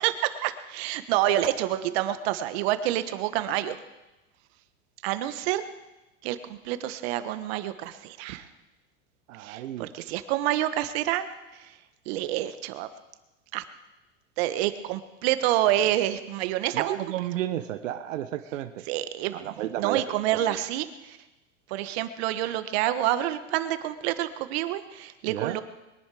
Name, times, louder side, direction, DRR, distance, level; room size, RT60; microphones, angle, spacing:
voice 1, 0.0-3.8 5.0-5.7 6.2-8.5 9.4-11.3 11.5-11.7 12.1-12.9 13.5-13.6 14.4-17.0 18.9-21.2 21.7-25.6, right 13 dB, 55° right, 11 dB, 1.3 m, -28 dB
voice 2, 9.3-9.9 16.7-18.8 19.3-20.0 20.3-20.6 25.3-25.6, right 12 dB, 85° right, 9 dB, 1.0 m, -32 dB
22.5 x 10.5 x 4.9 m, 1.0 s
supercardioid pair, 140°, 37 cm